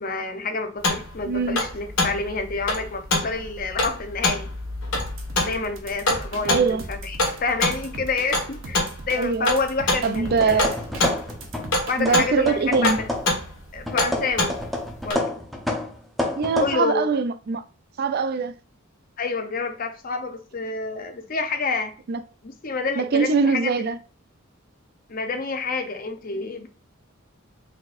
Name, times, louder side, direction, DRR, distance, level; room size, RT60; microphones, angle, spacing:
voice 1, 0.0-4.5 5.4-10.7 11.9-13.1 13.7-14.6 15.0-15.4 16.6-17.0 19.2-21.9 22.4-23.7 25.1-26.7, left 4 dB, 45° left, 0.7 m, -28 dB
sound 1, 0.8-15.1, left 2 dB, 85° left, 1.6 m, -26 dB
voice 2, 1.2-1.6 6.5-6.8 9.2-9.5 10.0-10.7 12.0-13.0 16.4-17.6 18.0-18.5 22.1-22.2 23.0-24.0, right 5 dB, 50° right, 0.4 m, -22 dB
sound 2, 4.9-12.3, right 2 dB, 75° right, 1.0 m, -39 dB
sound 3, 10.2-11.8 12.0-13.4 13.9-16.7, left 1 dB, ahead, 0.8 m, -29 dB
4.4 x 3.9 x 2.5 m
head